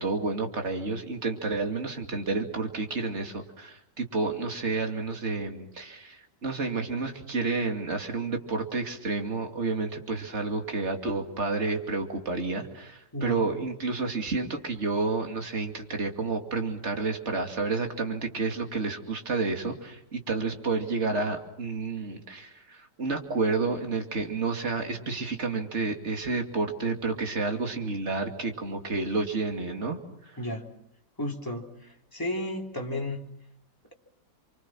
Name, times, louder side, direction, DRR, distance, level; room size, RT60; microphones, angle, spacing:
voice 1, 0.0-30.4, right 3 dB, 40° right, 4 dB, 2.8 m, -30 dB
voice 2, 13.1-13.5 30.4-30.7 31.2-33.3, left 1 dB, 10° left, 0 dB, 3.4 m, -33 dB
29.0 x 24.5 x 6.1 m, 0.80 s
omnidirectional pair, 1.8 m